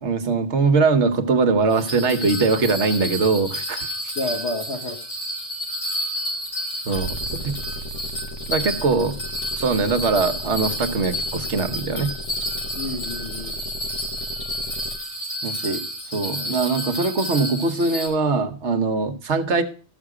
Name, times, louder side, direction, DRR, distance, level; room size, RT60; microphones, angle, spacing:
voice 1, 0.0-3.9 6.9-7.2 7.4-7.5 8.5-9.1 9.5-12.1 15.4-15.8 16.1-19.6, right 4 dB, 60° right, 8 dB, 1.2 m, -21 dB
Bell, 1.7-18.1, equal, 90° left, 6.4 m, -30 dB
voice 2, 4.1-5.0 12.7-13.6 15.4-15.6 16.1-16.7, left 2 dB, 55° left, 3 dB, 1.5 m, -31 dB
sound 1, 6.9-15.0, equal, 25° left, 0.8 m, -36 dB
13.5 x 7.2 x 4.8 m, 0.39 s
omnidirectional pair, 1.4 m